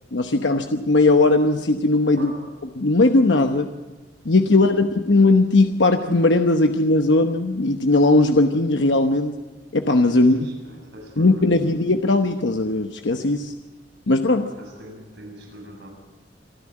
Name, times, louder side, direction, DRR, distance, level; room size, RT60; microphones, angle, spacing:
voice 1, 0.1-2.3 2.8-3.7 4.2-9.3 9.7-10.4 11.2-13.5 14.1-14.5, left 2 dB, 75° left, 1.0 m, -18 dB
voice 2, 2.2-2.6 4.5-4.9 10.1-11.8 14.4-15.9, right 1 dB, 75° right, 7.7 m, -42 dB
27.0 x 11.0 x 8.8 m
head